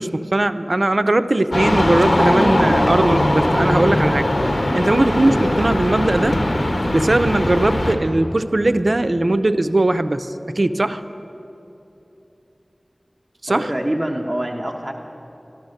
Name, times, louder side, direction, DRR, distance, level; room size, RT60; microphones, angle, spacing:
voice 1, 0.0-4.3 4.7-6.4 6.9-11.0 13.4-13.7, right 2 dB, 60° right, 10 dB, 0.5 m, -19 dB
sound 1, 1.5-8.0, left 1 dB, 75° left, 1.3 m, -19 dB
voice 2, 13.5-14.9, right 1 dB, 20° right, 0 dB, 1.0 m, -25 dB
13.0 x 12.5 x 6.4 m, 2.9 s
wide cardioid pair, 50°, 0 cm